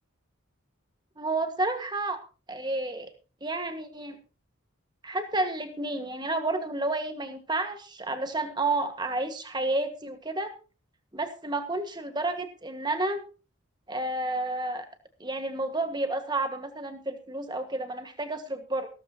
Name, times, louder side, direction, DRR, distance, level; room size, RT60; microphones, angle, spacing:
voice 1, 1.2-2.2 2.5-3.1 3.4-4.2 5.0-10.5 11.1-13.2 13.9-14.8 15.2-18.9, right 2 dB, 20° right, 7 dB, 1.6 m, -30 dB
15.5 x 14.0 x 2.9 m, 0.35 s
head